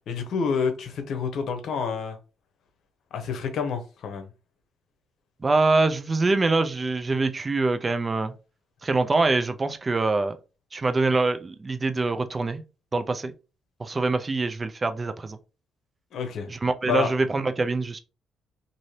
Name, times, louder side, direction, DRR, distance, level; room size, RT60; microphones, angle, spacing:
voice 1, 0.1-2.2 3.1-4.3 16.1-16.5 16.8-17.1, left 6 dB, 70° left, 0.8 m, -28 dB
voice 2, 5.4-8.3 8.8-10.4 10.7-12.6 12.9-13.3 13.8-15.4 16.5-18.0, right 3 dB, 30° right, 0.4 m, -24 dB
2.7 x 2.6 x 3.1 m
cardioid pair, 90°, 0 cm